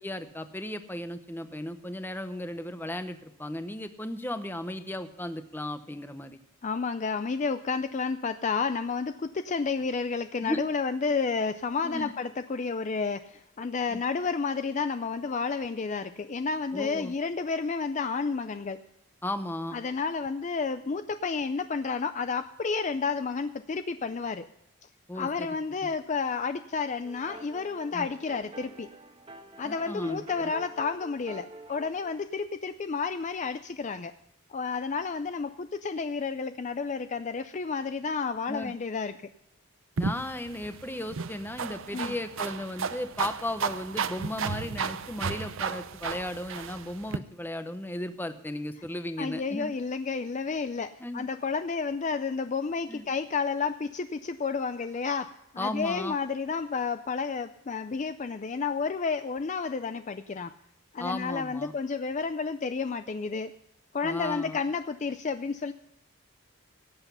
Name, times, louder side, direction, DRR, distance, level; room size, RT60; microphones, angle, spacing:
voice 1, 0.0-6.4 10.4-10.6 11.8-12.1 13.9-14.0 16.7-17.1 19.2-19.8 25.1-25.5 27.9-28.1 29.6-30.5 38.5-38.7 40.0-49.7 51.0-51.3 52.9-53.0 55.6-56.2 61.0-61.7 64.0-64.6, left 1 dB, 10° left, 9 dB, 0.7 m, -35 dB
voice 2, 6.6-18.8 19.7-24.5 25.1-28.9 29.6-34.1 34.5-39.1 41.9-42.2 49.2-60.5 60.9-63.5 63.9-65.7, left 4 dB, 35° left, 10 dB, 0.4 m, -31 dB
sound 1, 27.0-32.2, right 2 dB, 25° right, 1.3 m, -47 dB
sound 2, 40.0-47.2, right 5 dB, 60° right, 0.6 m, -34 dB
17.5 x 8.1 x 5.5 m, 0.79 s
head